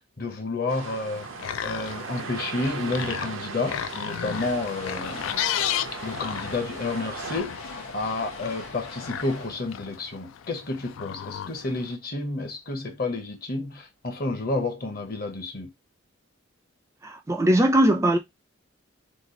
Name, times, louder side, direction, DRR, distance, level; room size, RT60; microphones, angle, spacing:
voice 1, 0.2-1.3 1.6-5.3 6.0-15.7, left 3 dB, 45° left, 0.9 m, -30 dB
sound 1, 0.7-7.4, right 5 dB, 75° right, 0.6 m, -38 dB
sound 2, 1.1-11.9, left 10 dB, 75° left, 0.3 m, -35 dB
sound 3, 3.3-11.3, left 3 dB, 90° left, 1.0 m, -41 dB
voice 2, 17.0-18.2, right 1 dB, 15° right, 0.3 m, -20 dB
3.1 x 2.3 x 3.8 m
head